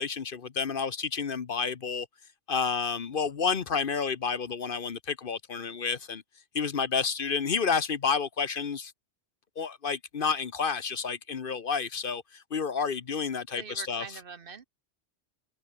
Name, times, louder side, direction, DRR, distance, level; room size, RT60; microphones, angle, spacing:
voice 1, 0.0-2.1 2.5-6.2 6.5-8.9 9.6-14.0, left 5 dB, 50° left, 1.1 m, -30 dB
voice 2, 13.6-14.6, right 5 dB, 55° right, 1.2 m, -43 dB
omnidirectional pair, 1.2 m